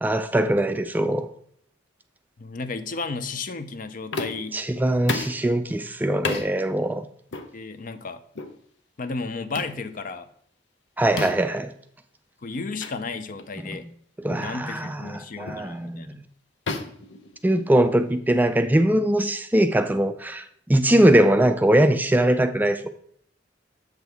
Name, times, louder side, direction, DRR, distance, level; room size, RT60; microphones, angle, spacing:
voice 1, 0.0-1.3 4.5-7.0 11.0-11.7 14.2-16.1 17.4-22.9, right 1 dB, 10° right, 0.3 m, -21 dB
voice 2, 2.4-4.6 7.5-8.2 9.0-10.3 12.4-13.9 14.4-16.3, left 4 dB, 45° left, 0.6 m, -33 dB
sound 1, 4.1-4.5 5.1-5.4 6.2-6.5 7.3-7.5 8.3-8.6 9.5-9.8 11.2-11.6 12.8-12.9 13.4-13.5 14.3-14.5 15.5-15.7 16.7-17.9, left 3 dB, 75° left, 0.8 m, -32 dB
7.7 x 6.2 x 3.4 m
head